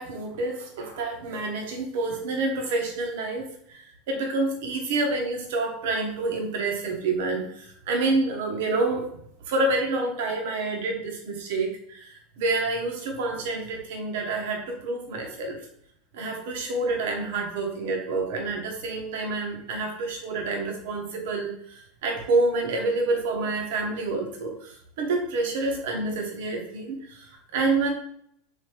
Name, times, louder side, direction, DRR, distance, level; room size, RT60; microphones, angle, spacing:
voice 1, 0.0-9.1 9.5-15.6 16.1-27.9, right 3 dB, 70° right, 1 dB, 0.8 m, -28 dB
3.3 x 2.4 x 4.4 m, 0.69 s
hypercardioid pair, 95°, 0 cm